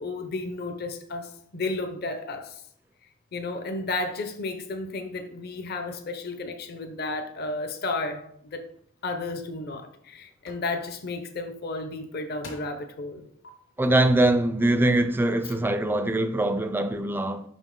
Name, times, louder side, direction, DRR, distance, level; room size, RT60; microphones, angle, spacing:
voice 1, 0.0-2.6 3.3-8.6 9.0-13.2, left 3 dB, 50° left, 0.7 m, -33 dB
sound 1, 10.5-10.7 11.9-12.0 12.4-12.9 13.4-13.5, left 2 dB, 70° left, 1.8 m, -45 dB
voice 2, 13.8-17.4, right 1 dB, 10° right, 0.4 m, -23 dB
5.5 x 5.3 x 3.7 m
head